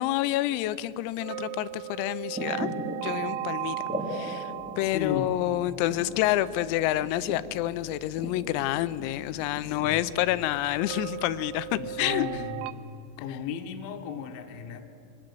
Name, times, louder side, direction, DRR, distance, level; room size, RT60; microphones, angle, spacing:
voice 1, 0.0-2.7 3.0-3.8 4.1-12.3, left 15 dB, 90° left, 15 dB, 3.4 m, -28 dB
sound 1, 1.2-6.1 10.8-12.7, right 14 dB, 90° right, 2.5 m, -36 dB
sound 2, 2.2-10.4, equal, 5° right, 0.9 m, -40 dB
sound 3, 4.5-12.3, left 10 dB, 30° right, 5.2 m, -52 dB
voice 2, 4.8-5.3 9.7-10.1 11.8-12.9 13.2-14.8, left 8 dB, 70° left, 4 dB, 3.5 m, -35 dB
25.5 x 19.0 x 7.6 m, 2.6 s
omnidirectional pair, 6.0 m